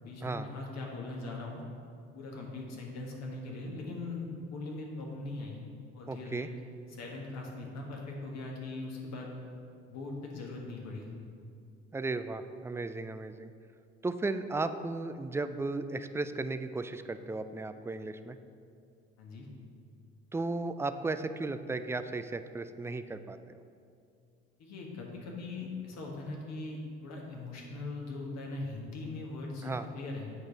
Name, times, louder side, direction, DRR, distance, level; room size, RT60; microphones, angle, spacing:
voice 1, 0.0-1.6 2.1-5.6 5.9-6.5 6.9-9.3 9.9-11.1 19.2-19.5 24.6-30.3, left 2 dB, 60° left, -1 dB, 1.7 m, -40 dB
voice 2, 6.1-6.5 11.9-13.5 14.0-18.4 20.3-23.4 29.6-29.9, right 3 dB, 10° right, 10 dB, 0.3 m, -35 dB
8.2 x 5.0 x 4.1 m, 2.4 s
hypercardioid pair, 60°, 31 cm